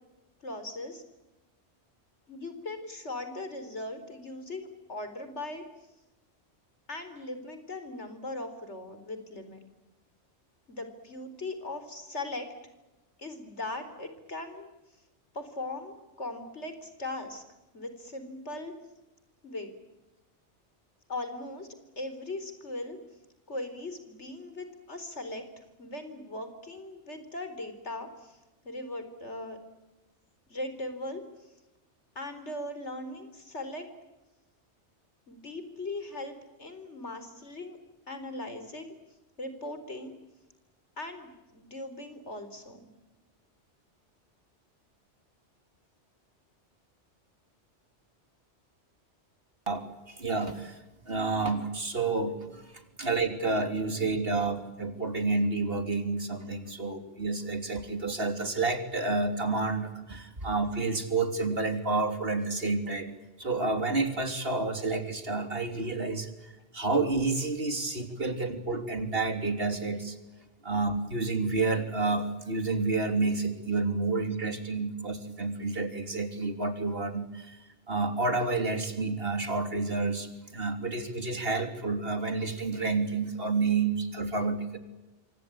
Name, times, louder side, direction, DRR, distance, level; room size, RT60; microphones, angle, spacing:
voice 1, 0.4-1.0 2.3-5.6 6.9-9.6 10.7-12.5 13.2-14.7 15.3-17.4 17.7-18.7 19.4-19.7 21.1-21.7 22.0-23.0 23.5-25.5 25.8-28.4 28.6-29.6 30.5-31.2 32.1-33.9 35.3-37.8 38.1-38.9 39.4-40.1 41.0-42.8, left 2 dB, 75° left, 9 dB, 4.5 m, -39 dB
voice 2, 49.7-50.8 51.1-70.2 70.6-77.6 77.9-84.8, right 3 dB, 55° right, 7 dB, 3.4 m, -30 dB
27.5 x 25.0 x 8.7 m, 1.0 s
omnidirectional pair, 1.2 m